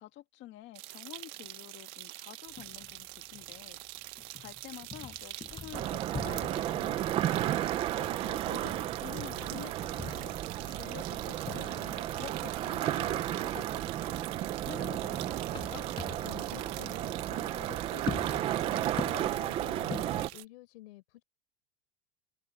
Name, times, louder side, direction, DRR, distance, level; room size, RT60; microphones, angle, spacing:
voice 1, 0.0-3.8 4.4-7.5 7.9-10.4 10.7-15.9, left 15 dB, 35° left, 2.0 m, -49 dB
sound 1, 0.8-20.4, right 20 dB, 50° right, 1.0 m, -45 dB
sound 2, 2.5-20.4, left 6 dB, 15° left, 6.6 m, -46 dB
sound 3, 5.7-20.3, right 12 dB, 20° right, 0.3 m, -33 dB
voice 2, 16.2-21.2, left 17 dB, 85° left, 4.2 m, -50 dB
cardioid pair, 175°, 32 cm